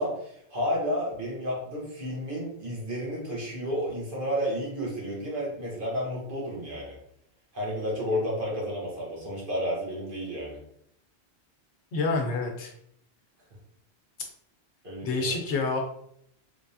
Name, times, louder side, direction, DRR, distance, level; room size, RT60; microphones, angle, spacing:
voice 1, 0.0-7.0 7.5-10.6 14.8-15.4, equal, 50° right, -3 dB, 1.3 m, -31 dB
voice 2, 11.9-12.7 15.0-15.8, left 3 dB, 80° left, 2 dB, 1.1 m, -27 dB
3.3 x 3.2 x 2.7 m, 0.71 s
omnidirectional pair, 1.1 m